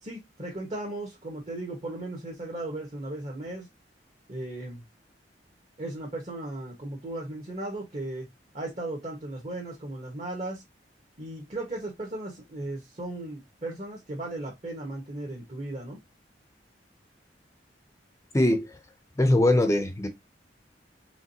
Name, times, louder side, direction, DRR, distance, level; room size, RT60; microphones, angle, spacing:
voice 1, 0.0-3.7 4.3-4.8 5.8-8.3 8.5-10.6 11.2-16.0, right 2 dB, 40° right, 1.4 m, -36 dB
voice 2, 18.3-18.7 19.2-20.1, left 1 dB, 15° left, 0.6 m, -21 dB
5.0 x 3.6 x 2.8 m
head